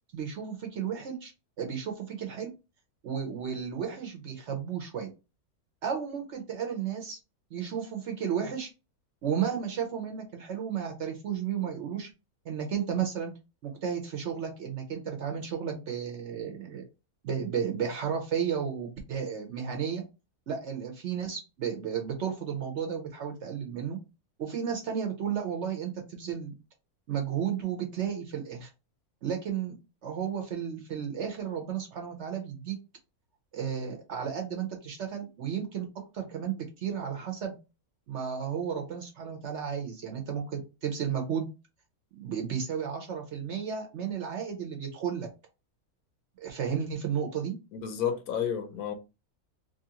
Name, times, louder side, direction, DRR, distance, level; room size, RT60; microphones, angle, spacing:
voice 1, 0.1-1.3 1.6-2.5 3.0-5.1 5.8-7.2 7.5-8.7 9.2-12.1 12.4-13.3 13.6-16.8 17.2-20.0 20.5-24.0 24.4-26.6 27.1-28.7 29.2-29.8 30.0-32.8 33.5-35.9 36.1-37.5 38.1-41.5 42.2-45.3 46.4-47.5, right 8 dB, 60° right, 0.8 m, -33 dB
voice 2, 47.7-48.9, left 8 dB, 80° left, 1.1 m, -31 dB
3.0 x 2.5 x 2.8 m
omnidirectional pair, 1.6 m